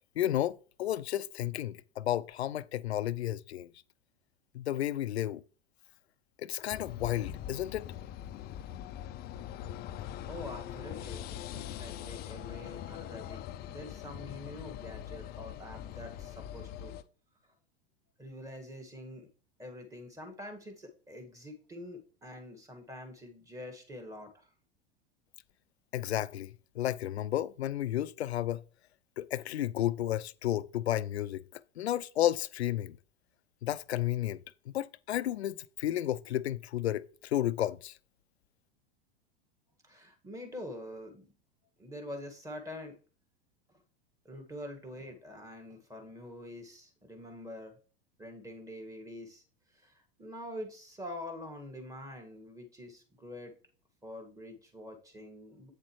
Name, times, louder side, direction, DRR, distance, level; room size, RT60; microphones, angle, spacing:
voice 1, 0.2-3.7 4.5-5.4 6.4-7.9 25.9-28.6 29.2-33.0 33.6-34.4 34.7-37.9, left 12 dB, 85° left, 0.5 m, -32 dB
sound 1, 6.7-17.0, left 11 dB, 30° left, 0.5 m, -42 dB
voice 2, 10.3-13.4 13.7-16.9 18.2-19.3 19.6-24.5 39.8-41.3 41.8-43.0 44.3-47.8 48.2-49.4 49.8-49.9 50.2-53.5 54.0-55.7, left 1 dB, 10° right, 1.8 m, -45 dB
8.5 x 6.4 x 3.1 m
hypercardioid pair, 95°, 32 cm